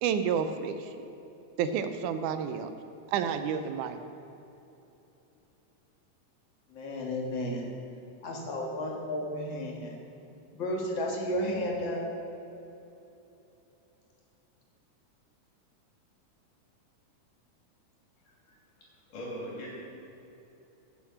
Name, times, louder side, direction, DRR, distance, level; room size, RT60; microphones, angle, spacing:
voice 1, 0.0-0.9 1.6-2.7 3.1-4.0, right 7 dB, 80° right, 9 dB, 2.1 m, -30 dB
voice 2, 6.7-7.6 8.2-10.0 10.5-12.0, left 1 dB, 45° left, -1 dB, 2.0 m, -32 dB
voice 3, 18.3-19.9, equal, 90° left, -4 dB, 4.3 m, -42 dB
14.0 x 6.7 x 5.7 m, 3.0 s
omnidirectional pair, 3.6 m